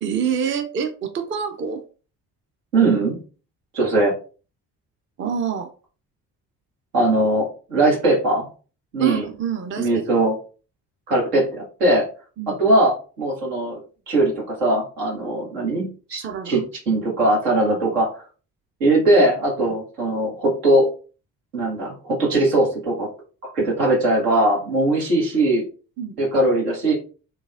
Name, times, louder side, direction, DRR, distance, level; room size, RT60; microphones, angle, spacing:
voice 1, 0.0-1.8 5.2-5.7 9.0-10.0 12.4-12.6 16.2-16.6 26.0-26.2, right 7 dB, 25° right, 6 dB, 0.6 m, -26 dB
voice 2, 2.7-3.2 3.7-4.1 6.9-8.5 8.9-9.2 9.8-10.3 11.1-12.1 12.5-13.8 14.1-18.1 18.8-20.9 21.5-23.1 23.4-25.6 26.2-26.9, right 2 dB, 75° right, -3 dB, 1.6 m, -20 dB
3.8 x 3.4 x 2.5 m, 0.37 s
figure-of-eight pair, 45°, 48 cm